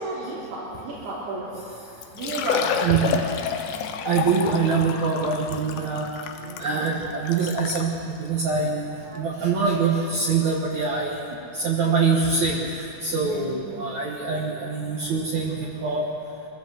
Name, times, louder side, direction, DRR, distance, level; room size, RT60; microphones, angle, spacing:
voice 1, 0.0-1.6 2.1-3.2 6.4-6.8 13.1-13.7, right 2 dB, 85° right, -7 dB, 5.0 m, -32 dB
Liquid, 1.6-1.7 2.0-7.9 8.6-8.7 9.2-9.3 10.9-11.0 11.2-11.3, left 7 dB, 85° left, 3.0 m, -30 dB
voice 2, 2.8-3.2 4.0-6.1 6.6-11.2 11.5-16.1, right 5 dB, 55° right, -2 dB, 2.4 m, -24 dB
24.0 x 15.0 x 7.8 m, 2.8 s
omnidirectional pair, 4.6 m